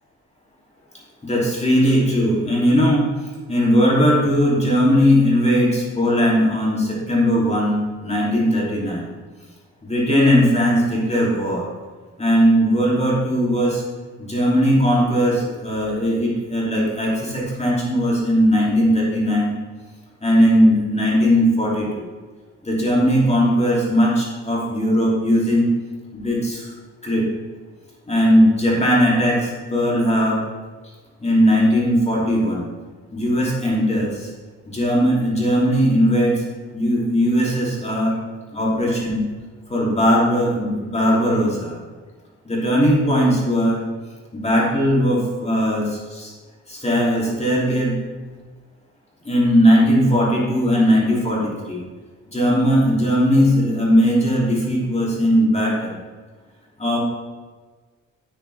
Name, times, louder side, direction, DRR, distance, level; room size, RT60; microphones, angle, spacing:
voice 1, 1.2-3.1 3.5-9.1 9.9-11.6 12.2-13.8 14.2-19.6 20.2-22.1 22.6-25.7 26.1-26.7 27.0-27.3 28.1-30.4 31.2-32.7 33.1-34.3 34.7-36.4 36.7-38.1 38.5-39.3 39.7-41.8 42.4-43.8 44.3-46.3 46.7-47.9 49.2-51.8 52.3-56.0 56.8-57.0, equal, 20° left, -4 dB, 3.0 m, -18 dB
9.1 x 9.0 x 3.5 m, 1.4 s
cardioid pair, 90°, 30 cm